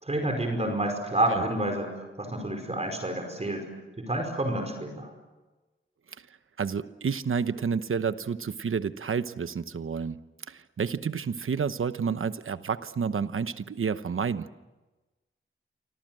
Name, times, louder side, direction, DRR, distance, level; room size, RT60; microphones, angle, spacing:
voice 1, 0.0-3.7 4.0-5.1, right 1 dB, 30° right, 3 dB, 5.2 m, -29 dB
voice 2, 6.6-10.2 10.5-14.5, right 6 dB, 85° right, 12 dB, 1.0 m, -30 dB
28.0 x 25.0 x 7.8 m, 1.2 s
wide cardioid pair, 110°, 21 cm